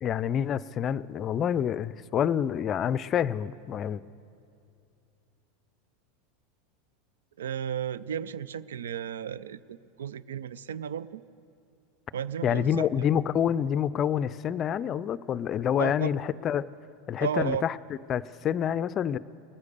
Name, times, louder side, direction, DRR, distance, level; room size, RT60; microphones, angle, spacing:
voice 1, 0.0-4.0 12.4-16.7 17.1-17.7 18.1-19.2, left 9 dB, 40° left, 18 dB, 0.4 m, -27 dB
voice 2, 7.4-11.2 12.1-13.1 15.8-16.1 17.2-17.7, right 8 dB, 80° right, 18 dB, 0.4 m, -34 dB
20.0 x 9.7 x 6.7 m, 2.5 s
hypercardioid pair, 90°, 0 cm